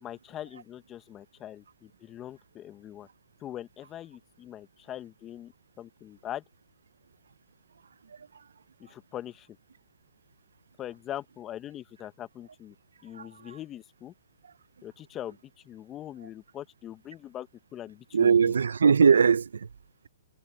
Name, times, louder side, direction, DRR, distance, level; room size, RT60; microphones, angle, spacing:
voice 1, 0.0-3.1 3.4-5.5 5.8-6.4 8.8-9.5 10.8-12.7 13.0-14.1 14.8-15.4 15.6-18.3, left 12 dB, 25° left, 1.6 m, -42 dB
voice 2, 13.1-13.6 18.1-19.7, right 6 dB, 85° right, 0.7 m, -21 dB
hypercardioid pair, 135°, 0 cm